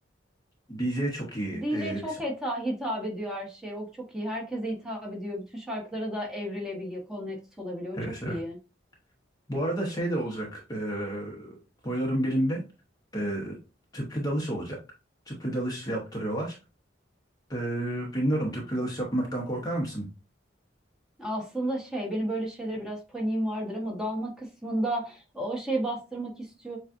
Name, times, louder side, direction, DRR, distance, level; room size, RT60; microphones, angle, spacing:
voice 1, 0.7-2.2 7.9-8.4 9.5-11.6 11.8-12.6 13.1-13.6 13.9-14.8 15.3-16.6 17.5-20.1, right 1 dB, 20° left, -1 dB, 0.9 m, -30 dB
voice 2, 1.5-8.0 8.3-8.6 21.2-26.8, right 1 dB, 5° right, -2 dB, 1.2 m, -32 dB
7.1 x 2.4 x 2.6 m, 0.30 s
head